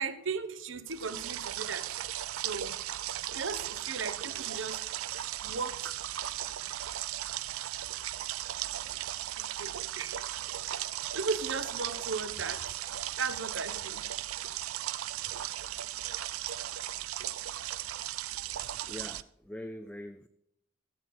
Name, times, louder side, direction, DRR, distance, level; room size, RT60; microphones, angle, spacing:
voice 1, 0.0-1.9 2.4-2.8 3.1-4.8 5.4-6.0 9.4-10.2 11.1-12.6 13.2-14.0, right 4 dB, 65° right, 11 dB, 1.0 m, -36 dB
sound 1, 0.9-19.2, right 12 dB, 90° right, 0.5 m, -37 dB
voice 2, 18.9-20.3, left 1 dB, 5° left, 6 dB, 0.4 m, -43 dB
15.5 x 7.8 x 4.4 m, 0.77 s
head